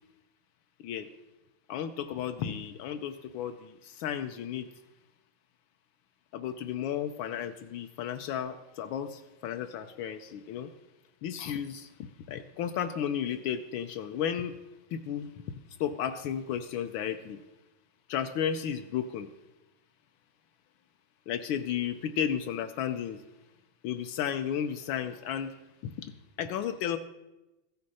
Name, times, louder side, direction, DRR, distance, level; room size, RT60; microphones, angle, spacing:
voice 1, 1.7-4.7 6.3-10.7 11.2-14.6 14.9-17.4 18.1-19.3 21.3-23.2 23.8-25.5 25.8-26.1 26.4-27.0, left 9 dB, 80° left, 8 dB, 1.4 m, -33 dB
14.5 x 6.4 x 5.5 m, 0.99 s
omnidirectional pair, 2.2 m